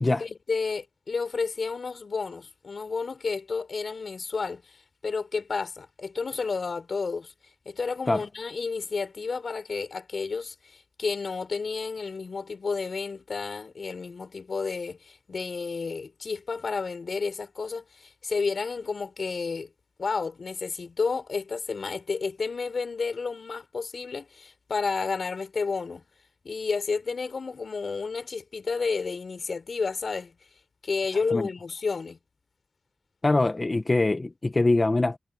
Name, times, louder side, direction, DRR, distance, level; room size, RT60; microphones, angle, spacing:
voice 1, 0.2-4.8 5.0-7.3 7.7-19.7 20.0-26.0 26.4-30.3 30.8-32.2, left 4 dB, 65° left, 5.8 m, -31 dB
voice 2, 33.2-35.2, left 2 dB, 30° left, 1.2 m, -23 dB
wide cardioid pair, 90°, 0 cm